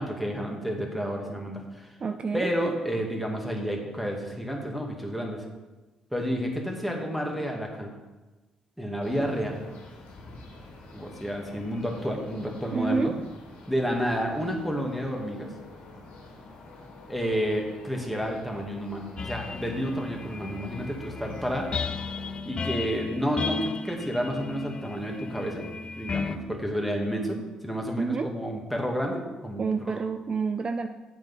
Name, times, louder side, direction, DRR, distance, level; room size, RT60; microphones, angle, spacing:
voice 1, 0.0-1.9 2.3-5.4 6.1-7.9 8.8-9.7 10.9-13.1 13.7-15.5 17.1-21.7 22.4-25.6 26.0-30.0, equal, ahead, 0 dB, 2.0 m, -30 dB
voice 2, 2.0-2.5 12.7-13.1 28.0-28.3 29.6-30.9, right 5 dB, 40° right, 7 dB, 0.5 m, -28 dB
sound 1, 9.0-22.4, left 2 dB, 85° left, 2.0 m, -48 dB
sound 2, 19.2-26.4, left 5 dB, 40° left, 0.6 m, -35 dB
7.8 x 6.1 x 5.5 m, 1.2 s
cardioid pair, 75°, 2 cm